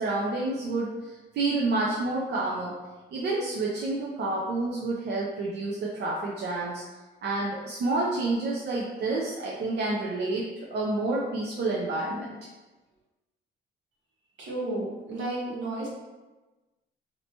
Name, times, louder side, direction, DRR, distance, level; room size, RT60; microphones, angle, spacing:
voice 1, 0.0-2.8 3.1-6.8 7.2-12.4, right 2 dB, 60° right, -4 dB, 0.6 m, -29 dB
voice 2, 14.4-15.9, right 2 dB, 75° right, -5 dB, 1.3 m, -32 dB
3.3 x 2.8 x 2.8 m, 1.2 s
cardioid pair, 90°, 20 cm